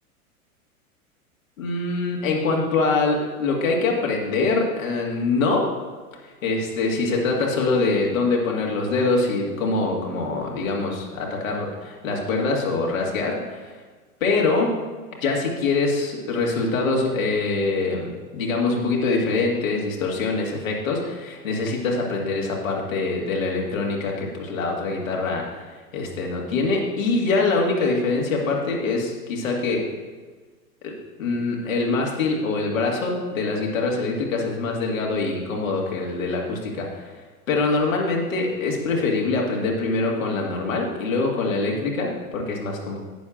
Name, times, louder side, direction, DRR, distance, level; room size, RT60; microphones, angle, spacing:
voice 1, 1.6-5.7 6.4-13.7 14.2-14.7 15.2-29.8 30.8-30.9 31.2-37.1 37.5-43.0, left 3 dB, 65° left, -1 dB, 2.1 m, -24 dB
11.5 x 9.6 x 2.6 m, 1.4 s
figure-of-eight pair, 95°, 44 cm